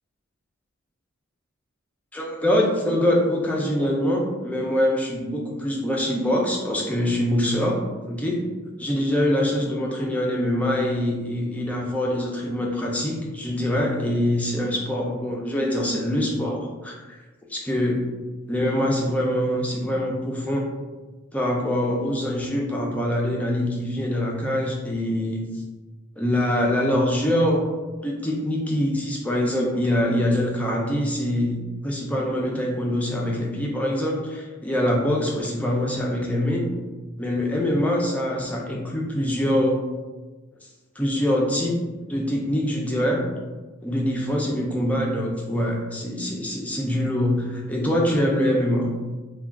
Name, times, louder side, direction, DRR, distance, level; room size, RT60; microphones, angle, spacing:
voice 1, 2.1-7.8 8.1-8.4 8.8-17.0 17.5-18.0 18.5-20.7 21.3-25.5 26.2-27.6 28.0-31.6 31.8-36.6 37.2-39.8 41.0-41.8 42.1-43.2 43.8-48.9, left 1 dB, 5° left, -2 dB, 0.4 m, -24 dB
2.3 x 2.2 x 3.5 m, 1.3 s
head